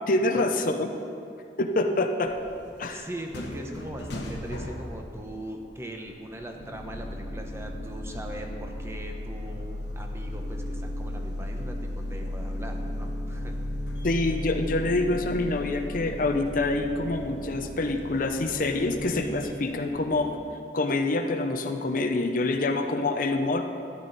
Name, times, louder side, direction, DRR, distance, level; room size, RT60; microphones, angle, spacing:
voice 1, 0.1-0.9 1.6-2.3 2.8-3.1 14.0-20.3 20.7-23.6, left 2 dB, 50° left, 6 dB, 0.6 m, -26 dB
sound 1, 2.2-20.4, equal, 85° left, 1.3 m, -36 dB
voice 2, 2.9-13.6, right 1 dB, 15° right, 2 dB, 0.9 m, -40 dB
13.0 x 9.8 x 4.1 m, 2.5 s
head